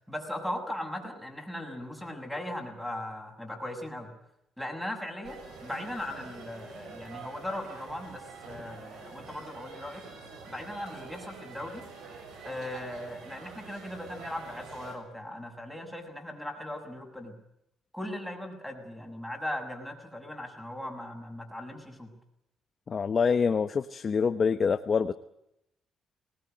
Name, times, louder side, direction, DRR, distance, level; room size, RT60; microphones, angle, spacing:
voice 1, 0.1-4.1 4.6-10.0 10.5-11.9 12.4-17.4 17.9-22.1, left 1 dB, ahead, 1 dB, 6.9 m, -38 dB
sound 1, 5.2-15.0, right 4 dB, 85° right, 6.6 m, -46 dB
voice 2, 22.9-25.1, left 5 dB, 45° left, 9 dB, 1.0 m, -26 dB
21.5 x 20.0 x 9.2 m, 0.82 s
cardioid pair, 90°, 0 cm